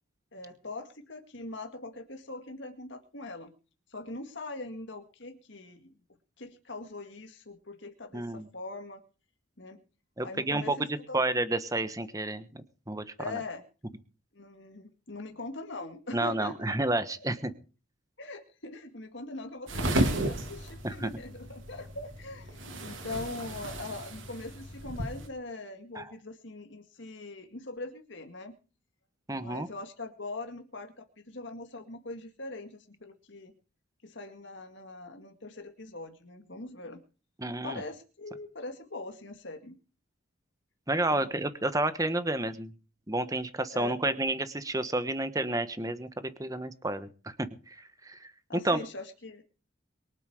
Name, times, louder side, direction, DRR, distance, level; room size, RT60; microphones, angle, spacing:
voice 1, 0.3-3.5 3.9-5.9 6.4-9.0 9.6-9.8 10.2-11.2 13.2-13.6 14.3-16.7 18.2-28.6 29.3-33.5 34.0-37.0 37.6-39.8 41.1-41.3 43.7-44.0 48.5-49.4, left 2 dB, 60° left, 5 dB, 2.0 m, -42 dB
voice 2, 8.1-8.5 10.2-10.8 11.1-13.4 16.1-17.5 20.8-21.1 25.9-26.1 29.3-29.7 37.4-37.8 40.9-42.7 43.1-47.4 47.7-47.8 48.0-48.3 48.6-48.8, right 2 dB, 15° right, 12 dB, 1.2 m, -30 dB
sound 1, 19.7-25.3, right 1 dB, 70° right, 3.1 m, -33 dB
23.0 x 8.2 x 4.9 m, 0.36 s
head